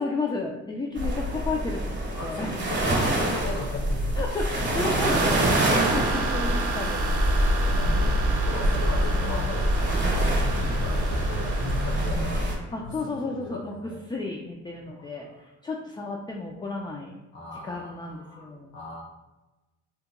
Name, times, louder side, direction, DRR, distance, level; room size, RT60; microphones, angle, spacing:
voice 1, 0.0-2.6 4.2-7.5 12.7-13.7 14.1-15.3 15.6-17.2 17.6-18.8, left 3 dB, 15° left, 0 dB, 0.3 m, -32 dB
sound 1, 1.0-12.5, equal, 35° right, 0.9 m, -25 dB
voice 2, 2.1-4.4 4.6-5.3 7.5-8.2 8.4-12.4 12.8-14.0 14.8-15.3 17.3-19.0, left 2 dB, 65° left, -1 dB, 0.8 m, -38 dB
sound 2, 5.0-12.1, right 4 dB, 75° right, 0.5 m, -32 dB
sound 3, 7.6-12.6, right 2 dB, 90° left, 1.1 m, -32 dB
2.9 x 2.1 x 3.5 m, 1.1 s
cardioid pair, 90°, 30 cm